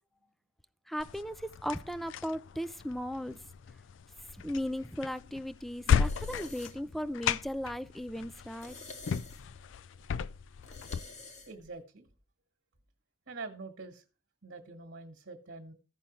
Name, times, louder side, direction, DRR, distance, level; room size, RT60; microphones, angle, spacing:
voice 1, 0.9-3.4 4.4-8.7, equal, ahead, 0.3 m, -37 dB
sound 1, 1.0-11.0, left 7 dB, 75° left, 0.4 m, -35 dB
sound 2, 4.2-11.8, left 3 dB, 40° left, 1.4 m, -52 dB
voice 2, 11.4-12.1 13.3-14.0 14.4-15.7, right 3 dB, 70° right, 1.4 m, -45 dB
15.0 x 5.6 x 3.2 m
head